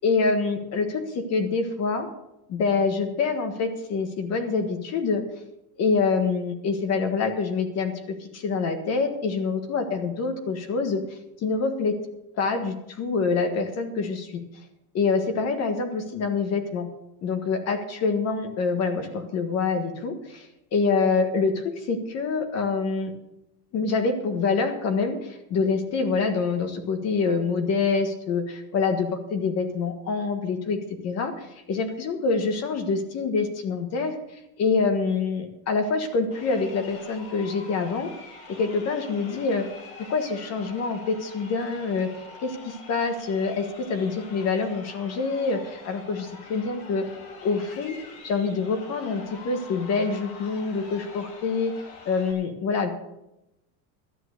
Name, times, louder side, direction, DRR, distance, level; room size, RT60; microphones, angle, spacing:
voice 1, 0.0-2.1 2.5-5.2 5.8-12.0 12.4-14.4 14.9-16.9 17.2-20.4 20.7-23.1 23.7-34.2 34.6-38.1 38.5-39.6 40.0-42.1 42.4-47.0 47.4-47.9 48.2-51.7 52.0-52.9, left 4 dB, 40° left, 7 dB, 1.5 m, -26 dB
Crowd, 36.2-52.3, left 3 dB, 55° left, 2.9 m, -45 dB
12.5 x 8.8 x 6.5 m, 0.88 s
cardioid pair, 160°, 41 cm